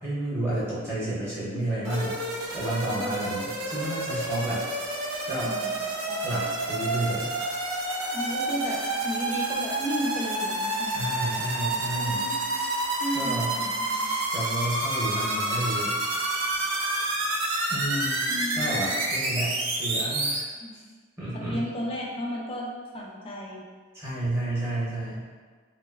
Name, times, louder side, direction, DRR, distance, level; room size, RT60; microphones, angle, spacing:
voice 1, 0.0-4.6 5.3-5.5 6.2-7.3 10.8-12.3 13.1-13.5 14.3-15.9 17.7-18.2 18.6-20.5 21.2-21.6 23.9-25.2, right 1 dB, 15° right, -10 dB, 0.6 m, -31 dB
sound 1, 1.8-20.4, right 2 dB, 75° right, 0.4 m, -29 dB
voice 2, 5.4-6.2 8.1-11.1 11.9-12.4 13.0-14.1 18.3-18.8 20.6-20.8 21.3-22.7 22.9-23.6, equal, 25° left, -1 dB, 0.3 m, -34 dB
2.6 x 2.2 x 2.3 m, 1.5 s
head